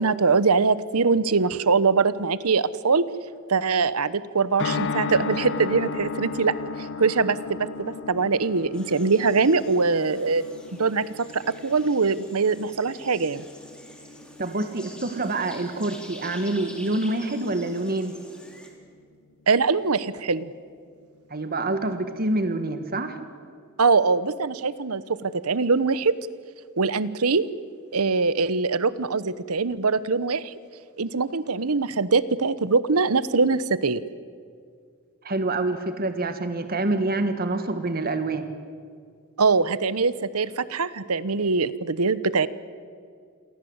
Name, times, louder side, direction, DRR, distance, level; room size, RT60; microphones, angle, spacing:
voice 1, 0.0-3.1 3.5-10.4 10.7-13.4 19.5-20.5 23.8-26.2 26.8-27.4 27.9-30.5 31.0-34.0 39.4-42.5, right 4 dB, 90° right, 16 dB, 1.0 m, -23 dB
sound 1, 4.6-16.8 17.1-17.2 17.4-17.5, left 4 dB, 55° left, 0.9 m, -35 dB
sound 2, 8.7-18.7, equal, 5° left, 3.9 m, -46 dB
voice 2, 14.4-18.1 21.3-23.2 35.2-38.5, right 2 dB, 45° right, 8 dB, 1.7 m, -26 dB
28.5 x 23.0 x 8.1 m, 2.2 s
head